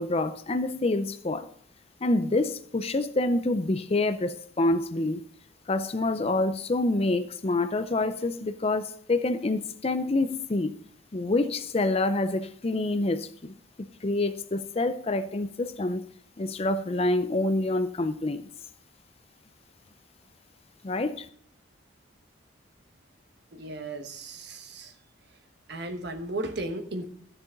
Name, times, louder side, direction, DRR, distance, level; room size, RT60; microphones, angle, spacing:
voice 1, 0.0-1.5 2.0-5.2 5.7-10.8 11.1-13.5 14.0-16.0 16.4-18.4 20.8-21.3, left 2 dB, 30° left, 0.5 m, -27 dB
voice 2, 23.5-24.9 25.7-27.1, right 2 dB, 55° right, 1.3 m, -35 dB
13.0 x 6.8 x 3.9 m
head